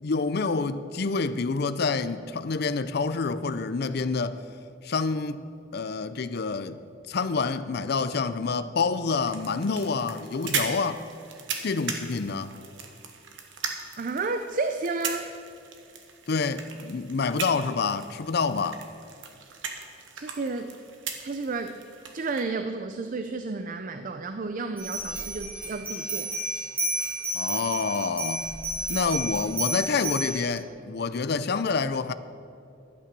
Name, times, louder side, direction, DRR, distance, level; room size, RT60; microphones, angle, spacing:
voice 1, 0.0-4.4 4.8-5.4 5.7-6.8 7.1-11.0 11.6-12.5 16.3-18.8 27.3-28.5 28.9-32.1, left 4 dB, 55° left, 0.5 m, -27 dB
sound 1, 9.3-22.4, right 6 dB, 75° right, 1.3 m, -38 dB
voice 2, 14.0-15.3 20.1-20.7 21.2-21.8 22.1-26.3, right 3 dB, 45° right, 0.5 m, -31 dB
sound 2, 24.8-30.4, right 1 dB, 10° right, 3.5 m, -31 dB
12.0 x 8.8 x 6.8 m
head